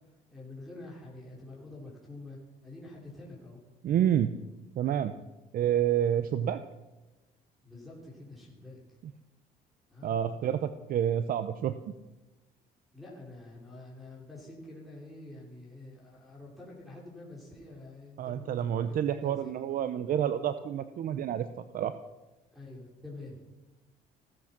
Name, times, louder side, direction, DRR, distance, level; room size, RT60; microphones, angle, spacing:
voice 1, 0.3-3.6 7.6-8.8 9.9-10.2 12.9-19.5 21.0-21.1 22.5-23.4, left 2 dB, ahead, -5 dB, 5.2 m, -47 dB
voice 2, 3.8-4.3 4.8-5.1 5.5-6.6 10.0-11.7 18.2-21.9, right 10 dB, 55° right, 11 dB, 0.7 m, -29 dB
16.5 x 13.5 x 5.9 m, 1.1 s
cardioid pair, 110°, 17 cm